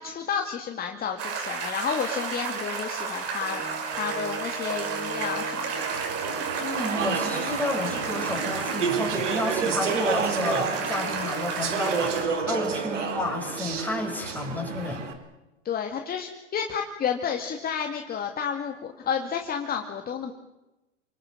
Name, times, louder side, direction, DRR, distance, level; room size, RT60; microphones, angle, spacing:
voice 1, 0.0-3.6 3.9-5.8 12.6-12.8 15.6-20.3, left 7 dB, 25° left, 3 dB, 2.4 m, -31 dB
sound 1, 1.2-12.2, right 5 dB, 40° right, 6.3 m, -32 dB
Organ, 3.4-14.1, right 4 dB, 65° right, 8.0 m, -38 dB
Speech / Chatter, 5.7-15.1, right 5 dB, 85° right, 3.8 m, -30 dB
voice 2, 6.6-15.1, left 2 dB, 5° left, 2 dB, 6.2 m, -31 dB
29.0 x 19.5 x 7.5 m, 0.99 s
hypercardioid pair, 105°, 36 cm